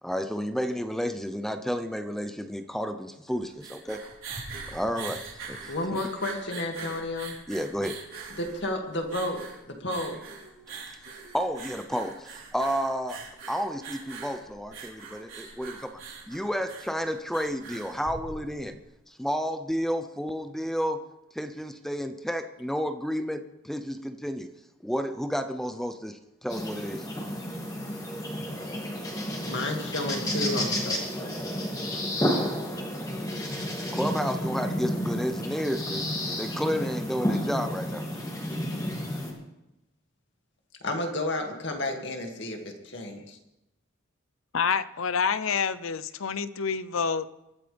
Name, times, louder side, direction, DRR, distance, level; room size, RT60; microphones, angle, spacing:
voice 1, 0.0-4.0 4.7-6.0 7.5-8.0 11.3-13.2 13.5-16.0 16.3-18.8 19.1-21.0 21.3-24.5 24.8-27.1 33.9-38.1, equal, ahead, 8 dB, 0.7 m, -31 dB
sound 1, 3.3-18.8, right 4 dB, 80° right, 4.1 m, -43 dB
voice 2, 5.7-7.3 8.4-10.2 29.4-31.4 40.8-43.4, left 1 dB, 55° left, 2 dB, 2.4 m, -32 dB
sound 2, 26.5-39.3, equal, 20° left, 2.6 m, -31 dB
voice 3, 44.5-47.3, left 6 dB, 85° left, 14 dB, 0.7 m, -27 dB
23.5 x 13.5 x 3.5 m, 0.92 s
head